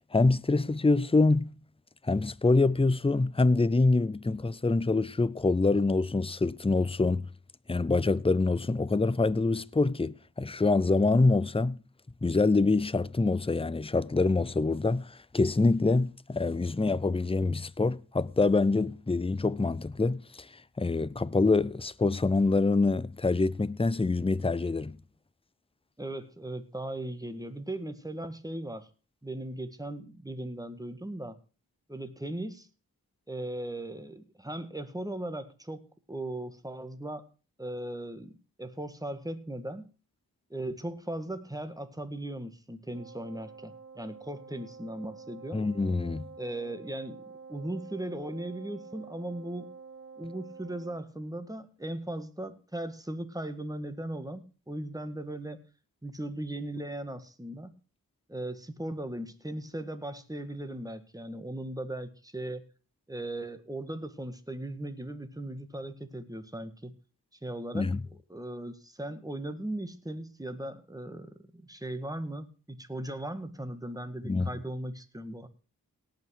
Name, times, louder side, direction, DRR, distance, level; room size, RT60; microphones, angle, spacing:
voice 1, 0.1-1.5 2.0-7.3 7.7-11.8 12.2-20.5 20.8-25.0 45.5-46.3 67.7-68.0 74.2-74.5, left 3 dB, 15° left, 0.6 m, -25 dB
voice 2, 26.0-28.9 29.2-31.4 31.9-32.7 33.3-37.2 37.6-39.9 40.5-45.7 46.4-47.2 47.5-49.7 50.2-55.6 56.0-57.8 58.3-62.6 63.1-66.9 67.4-67.9 68.3-75.5, right 1 dB, 10° right, 1.8 m, -38 dB
Wind instrument woodwind instrument, 42.9-51.1, right 5 dB, 35° right, 3.1 m, -48 dB
17.5 x 6.0 x 6.5 m
cardioid pair, 40°, 38 cm